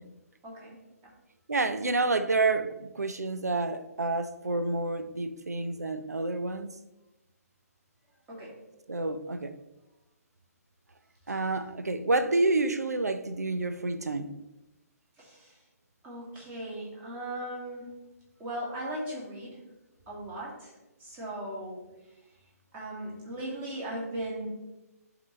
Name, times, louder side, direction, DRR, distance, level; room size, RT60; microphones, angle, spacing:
voice 1, 0.4-0.8 8.3-8.6 11.3-11.4 15.2-15.6 16.0-17.9 18.4-19.6 20.1-20.7 21.0-21.9 22.7-24.5, right 1 dB, 20° right, 2.2 m, -38 dB
voice 2, 1.5-6.7 8.9-9.6 11.3-14.3, right 2 dB, 80° right, 0.6 m, -29 dB
11.0 x 4.0 x 3.2 m
figure-of-eight pair, 130°, 9 cm